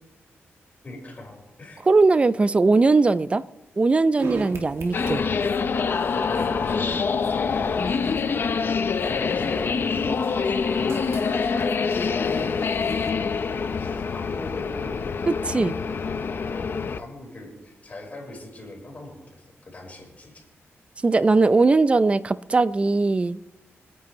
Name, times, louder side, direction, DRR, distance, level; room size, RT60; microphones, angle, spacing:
voice 1, 0.8-1.8 6.3-7.8 9.1-12.9 13.7-15.2 15.8-16.2 16.5-20.5, left 2 dB, 35° left, 4.4 m, -41 dB
voice 2, 1.9-3.4 3.8-5.3 15.3-15.8 21.0-23.4, right 3 dB, 25° right, 0.4 m, -20 dB
sound 1, 4.2-13.1, right 3 dB, 70° right, 2.1 m, -40 dB
sound 2, 4.9-17.0, left 5 dB, 50° left, 0.7 m, -25 dB
25.0 x 9.4 x 3.1 m
wide cardioid pair, 115°, 5 cm